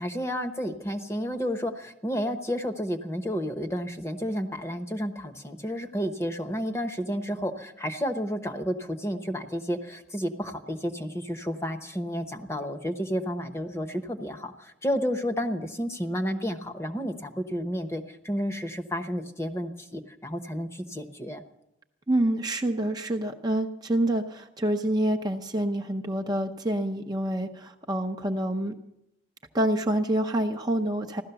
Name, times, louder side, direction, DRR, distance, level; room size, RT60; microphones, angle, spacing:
voice 1, 0.0-21.4, equal, 15° left, 6 dB, 0.9 m, -31 dB
voice 2, 22.1-28.8 29.5-31.2, right 1 dB, 20° right, 3 dB, 0.7 m, -27 dB
16.0 x 12.5 x 6.9 m, 0.87 s
head